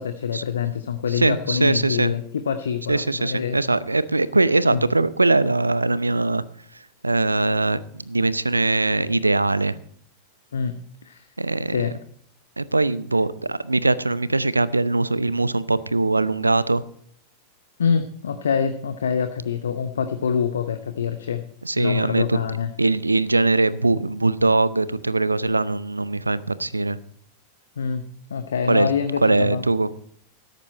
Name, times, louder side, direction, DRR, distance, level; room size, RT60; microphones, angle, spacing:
voice 1, 0.0-3.6 4.7-4.8 10.5-10.7 11.0-11.3 11.7-11.9 17.8-21.4 21.8-22.7 27.8-28.0 28.3-29.6, left 7 dB, 65° left, 9 dB, 0.8 m, -25 dB
voice 2, 1.1-2.1 2.9-6.4 7.0-9.8 11.4-11.9 12.6-16.8 21.6-22.4 22.8-27.0 28.7-28.9 29.2-29.9, right 2 dB, 80° right, 18 dB, 0.6 m, -21 dB
13.5 x 10.5 x 4.3 m, 0.63 s
figure-of-eight pair, 90°, 0 cm